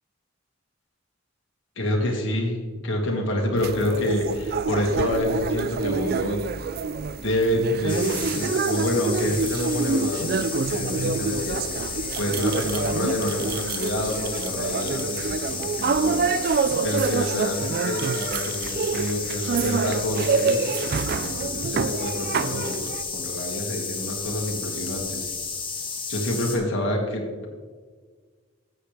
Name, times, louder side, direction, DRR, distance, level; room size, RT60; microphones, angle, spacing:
voice 1, 1.8-6.5 7.2-11.6 11.9-16.2 16.8-20.7 21.2-25.3 26.1-27.5, left 1 dB, 70° left, 0 dB, 1.9 m, -28 dB
sound 1, 3.6-23.0, right 4 dB, 50° right, 0.4 m, -27 dB
sound 2, 7.9-26.6, left 5 dB, 25° left, 1.6 m, -33 dB
12.5 x 8.0 x 3.4 m, 1.5 s
head